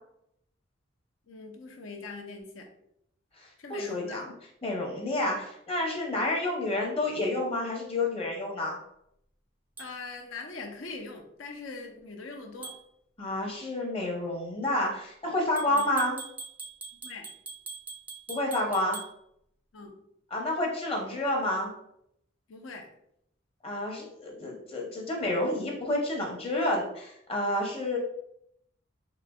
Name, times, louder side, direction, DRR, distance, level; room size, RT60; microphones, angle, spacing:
voice 1, 1.3-2.7 3.6-4.2 9.8-12.7 15.7-15.8 17.0-17.3 19.7-20.0 22.5-22.9, left 3 dB, 85° left, 2 dB, 0.6 m, -42 dB
voice 2, 3.4-4.3 4.6-8.8 13.2-16.2 18.3-19.0 20.3-21.7 23.6-28.0, left 1 dB, 30° left, -1 dB, 0.7 m, -29 dB
sound 1, 9.8-9.9 12.6-12.8 15.6-19.1, right 4 dB, 10° right, 0.3 m, -42 dB
3.9 x 2.5 x 2.3 m, 0.74 s
head